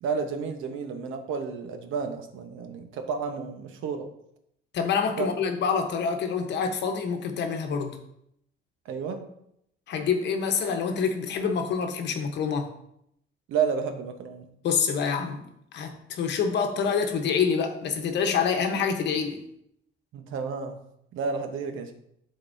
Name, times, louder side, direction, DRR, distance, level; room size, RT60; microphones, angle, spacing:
voice 1, 0.0-4.0 5.2-5.3 8.8-9.3 13.5-14.5 20.1-20.8 21.1-21.9, right 6 dB, 70° right, 6 dB, 1.0 m, -31 dB
voice 2, 4.7-8.0 9.9-12.7 14.6-15.4 15.7-19.4, left 6 dB, 55° left, 5 dB, 1.0 m, -26 dB
11.5 x 4.0 x 2.7 m, 0.75 s
cardioid pair, 150°, 21 cm